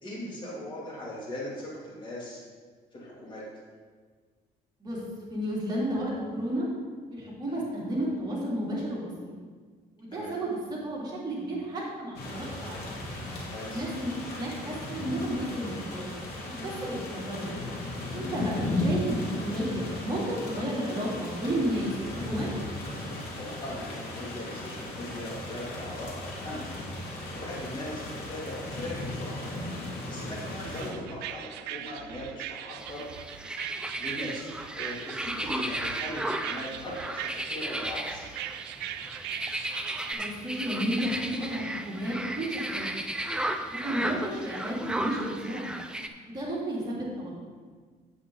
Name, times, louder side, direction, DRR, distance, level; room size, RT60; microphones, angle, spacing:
voice 1, 0.0-2.4 2.9-3.4 7.5-7.6 10.1-10.3 13.5-13.8 23.3-26.7 27.0-29.4 30.1-33.1 34.0-34.5 34.7-38.3 43.8-44.0, left 1 dB, 30° left, -6 dB, 2.9 m, -39 dB
voice 2, 5.3-6.7 7.1-9.3 10.0-12.9 13.6-16.1 16.5-17.5 18.1-22.5 40.1-43.0 43.7-45.7 46.2-47.3, right 1 dB, 25° right, -6 dB, 3.0 m, -32 dB
sound 1, 12.1-30.9, left 1 dB, 65° left, 2.3 m, -36 dB
sound 2, 30.6-40.1, right 12 dB, 80° right, 0.4 m, -40 dB
sound 3, 32.8-46.1, right 1 dB, 5° right, 0.5 m, -35 dB
8.5 x 8.4 x 3.9 m, 1.5 s
cardioid pair, 110°, 17 cm